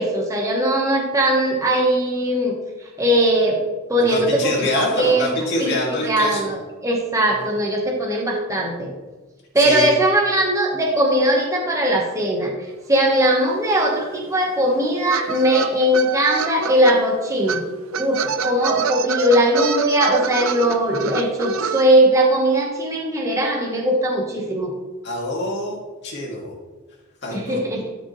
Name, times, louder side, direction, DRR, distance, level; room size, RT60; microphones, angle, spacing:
voice 1, 0.0-2.6 3.0-3.6 3.9-5.3 5.6-8.9 9.5-12.5 12.9-17.6 18.0-24.7 27.3-27.9, right 1 dB, 15° right, -1 dB, 1.2 m, -19 dB
voice 2, 4.0-6.5 7.3-7.5 9.6-9.9 25.0-25.8 26.0-26.5 27.2-27.6, left 1 dB, 55° left, -3 dB, 2.4 m, -25 dB
sound 1, 13.4-13.5 13.6-16.9 17.5-17.6 17.9-21.8, right 6 dB, 65° right, 0.5 m, -26 dB
12.5 x 5.1 x 3.1 m, 1.3 s
head